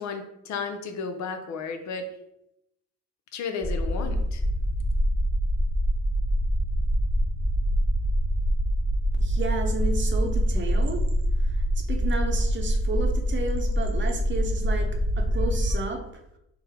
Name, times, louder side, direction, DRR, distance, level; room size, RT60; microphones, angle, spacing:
voice 1, 0.0-2.1 3.3-4.4, left 5 dB, 65° left, 6 dB, 0.6 m, -33 dB
sound 1, 3.6-15.8, equal, 10° left, 0.4 m, -25 dB
voice 2, 9.1-11.0 11.5-11.6 11.9-14.9 15.2-16.0, right 3 dB, 40° right, 3 dB, 0.7 m, -32 dB
3.8 x 2.0 x 4.3 m, 0.84 s
cardioid pair, 90°, 30 cm